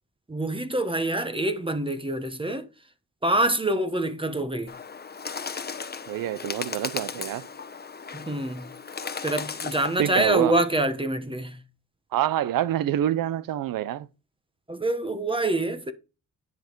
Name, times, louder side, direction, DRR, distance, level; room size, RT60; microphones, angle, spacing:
voice 1, 0.3-2.7 3.2-4.7 8.1-8.7 9.2-11.6 14.7-15.9, right 1 dB, 15° right, 1.1 m, -26 dB
Bird, 4.7-10.3, left 5 dB, 30° left, 1.0 m, -36 dB
voice 2, 6.1-7.5 10.0-10.6 12.1-14.1, right 12 dB, 80° right, 0.7 m, -26 dB
10.5 x 5.3 x 4.6 m
cardioid pair, 95°, 33 cm